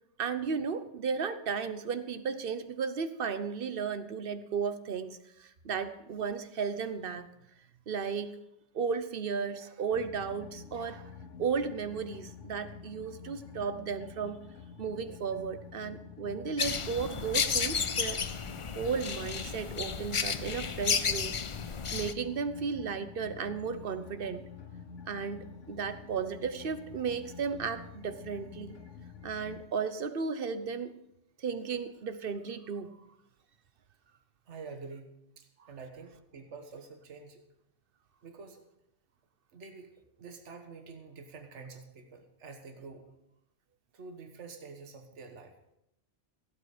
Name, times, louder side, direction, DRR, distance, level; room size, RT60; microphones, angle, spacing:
voice 1, 0.2-7.3 7.9-8.3 8.7-11.1 11.4-14.4 14.8-18.2 18.7-21.4 21.9-24.4 25.1-28.8 29.2-30.9 31.4-33.0 35.6-35.7, right 6 dB, 55° right, 11 dB, 1.0 m, -34 dB
sound 1, 9.9-29.7, left 6 dB, 80° left, 1.2 m, -48 dB
sound 2, 16.6-22.1, left 6 dB, 40° left, 0.4 m, -32 dB
voice 2, 34.5-37.4 38.2-38.6 39.5-39.9 40.2-43.1 43.9-45.6, right 4 dB, 75° right, 5 dB, 1.6 m, -47 dB
17.0 x 8.5 x 5.0 m, 0.82 s
omnidirectional pair, 1.2 m